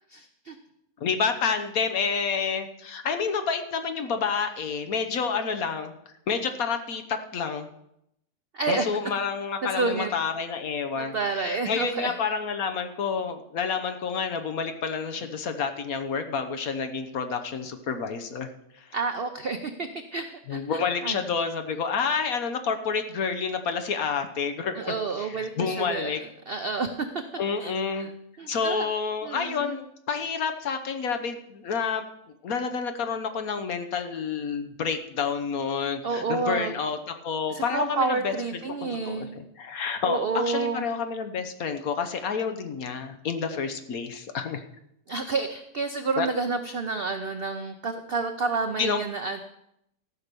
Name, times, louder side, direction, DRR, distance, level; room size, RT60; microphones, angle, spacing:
voice 1, 0.1-0.6 8.5-8.9 9.6-10.1 10.9-12.1 18.9-21.2 24.8-27.1 27.6-27.7 28.0-28.1 28.4-28.9 29.2-29.8 36.0-36.7 37.5-39.3 40.0-40.9 45.1-49.4, right 4 dB, 75° right, 7 dB, 0.5 m, -29 dB
voice 2, 1.0-5.9 6.3-7.7 8.7-18.5 18.8-18.9 20.5-26.2 27.4-28.1 28.5-32.1 32.4-38.6 39.0-39.3 39.6-44.6 46.2-46.3 48.8-49.0, left 5 dB, 60° left, 7 dB, 1.3 m, -29 dB
14.0 x 5.8 x 6.8 m, 0.80 s
omnidirectional pair, 1.9 m